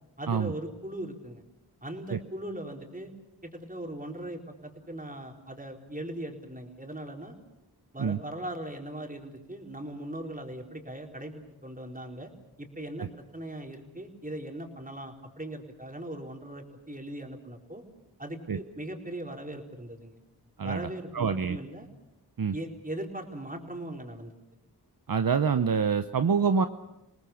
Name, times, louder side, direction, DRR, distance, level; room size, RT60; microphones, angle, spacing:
voice 1, 0.2-1.4 1.8-3.1 3.4-7.3 7.9-12.3 12.6-17.8 18.2-20.2 20.6-21.9 22.5-24.3, right 1 dB, 20° right, 2 dB, 4.3 m, -39 dB
voice 2, 21.1-21.6 22.4-22.5 25.1-26.7, right 6 dB, 60° right, 9 dB, 0.9 m, -26 dB
29.0 x 19.0 x 7.2 m, 0.94 s
cardioid pair, 50°, 39 cm